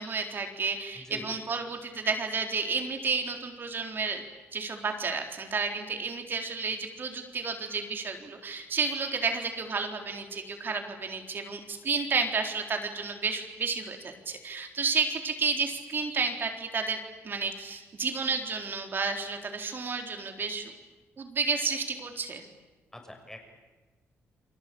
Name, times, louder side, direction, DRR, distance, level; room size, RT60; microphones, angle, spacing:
voice 1, 0.0-4.2 4.5-17.0 17.2-20.7 21.2-22.4, right 4 dB, 45° right, 4 dB, 3.9 m, -31 dB
voice 2, 0.9-1.6 22.9-23.4, left 1 dB, 10° left, 4 dB, 6.6 m, -45 dB
30.0 x 22.5 x 8.7 m, 1.2 s
cardioid pair, 105°, 5 cm